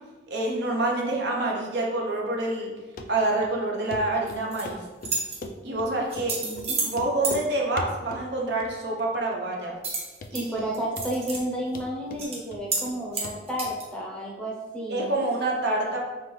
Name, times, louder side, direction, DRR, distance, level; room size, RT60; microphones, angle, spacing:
voice 1, 0.3-2.7 3.1-4.8 5.6-6.4 6.8-9.7 10.3-10.7 14.9-16.0, right 2 dB, 60° right, -1 dB, 0.7 m, -27 dB
Run, 3.0-3.1 3.4-3.5 3.9-4.0 4.3-5.9 6.2-6.3 6.6-6.7 6.9-7.5 7.8-8.3 8.6-9.1 9.3-9.4 9.9-10.0 10.2-10.7 11.0-11.5 11.8-13.0 13.2-13.4 13.7-13.8, left 2 dB, 45° left, 0.3 m, -38 dB
sound 1, 4.3-4.6 5.0-5.4 6.1-6.9 7.2-7.4 9.8-10.4 10.7-11.4 11.7-11.8 12.2-12.4 12.7-12.8 13.1-13.8, right 4 dB, 35° right, 0.8 m, -30 dB
voice 2, 6.4-6.8 10.3-15.1, right 1 dB, 5° left, -4 dB, 0.7 m, -32 dB
5.6 x 2.3 x 3.1 m, 1.2 s
head